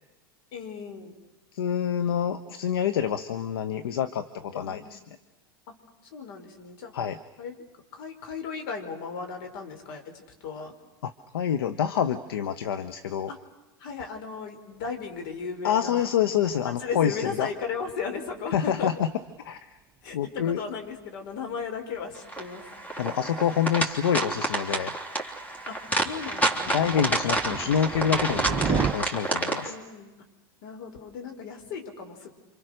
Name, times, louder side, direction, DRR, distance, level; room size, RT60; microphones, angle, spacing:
voice 1, 0.5-1.2 4.5-5.1 5.7-5.8 6.1-6.9 7.4-7.5 7.9-10.7 13.3-13.4 13.8-16.1 16.8-18.9 20.0-22.8 25.7-26.9 29.6-30.1 30.6-32.3, left 5 dB, 60° left, 4 dB, 5.1 m, -36 dB
voice 2, 1.5-5.0 6.9-7.2 11.0-13.3 15.6-17.5 18.5-19.1 19.4-19.8 20.1-20.6 23.0-24.9 26.7-29.7, left 9 dB, 80° left, 11 dB, 1.2 m, -27 dB
sound 1, 15.4-15.5 15.7-16.0 16.4-16.6 16.8-17.0 17.6-17.7 18.3-18.4 19.3-19.4 20.0-20.6 20.9-21.0 21.4-22.0 22.6-22.7 22.9-23.0 23.6-23.7 23.9-24.0 24.3-24.7 25.1-25.2 25.8-28.9, right 6 dB, 20° right, 1.0 m, -32 dB
sound 2, 22.3-29.7, right 1 dB, 10° left, 3.5 m, -29 dB
28.5 x 26.0 x 6.6 m, 1.1 s
hypercardioid pair, 100°, 12 cm